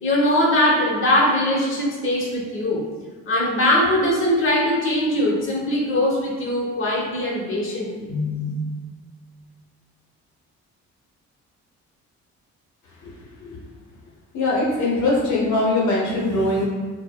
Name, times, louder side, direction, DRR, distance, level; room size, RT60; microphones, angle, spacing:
voice 1, 0.0-2.8 3.3-8.5, left 1 dB, 45° left, -4 dB, 1.0 m, -21 dB
voice 2, 14.3-16.7, left 2 dB, 75° left, -5 dB, 0.8 m, -21 dB
4.4 x 2.1 x 2.3 m, 1.5 s
cardioid pair, 90°, 30 cm